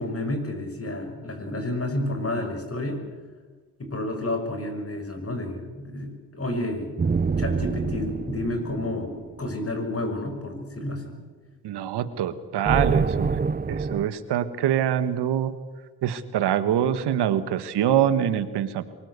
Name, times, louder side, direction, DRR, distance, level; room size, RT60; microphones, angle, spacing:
voice 1, 0.0-3.0 3.8-7.0 7.4-9.1 9.4-11.2, left 1 dB, 35° left, 6 dB, 6.3 m, -30 dB
sound 1, 7.0-9.7 12.7-14.1, right 5 dB, 25° right, 0.7 m, -26 dB
voice 2, 11.6-13.4 13.7-15.5 16.0-18.8, right 10 dB, 85° right, 12 dB, 1.6 m, -24 dB
24.5 x 20.5 x 8.3 m, 1.4 s
supercardioid pair, 55°, 39 cm